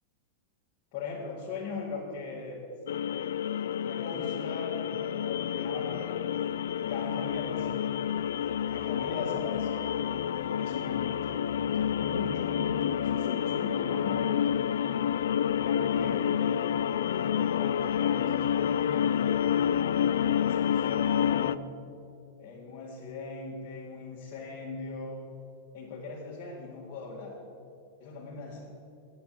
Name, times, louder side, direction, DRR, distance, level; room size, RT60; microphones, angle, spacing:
voice 1, 0.9-2.6 3.8-6.4 6.9-8.0 8.7-9.9 10.6-14.6 15.6-16.6 16.9-19.1 20.2-21.7 22.4-25.2 25.7-27.3 28.0-28.8, left 3 dB, 40° left, -6 dB, 1.9 m, -40 dB
sound 1, 2.9-21.6, left 9 dB, 90° left, 0.3 m, -29 dB
8.7 x 7.8 x 7.6 m, 2.5 s
supercardioid pair, 145°, 0 cm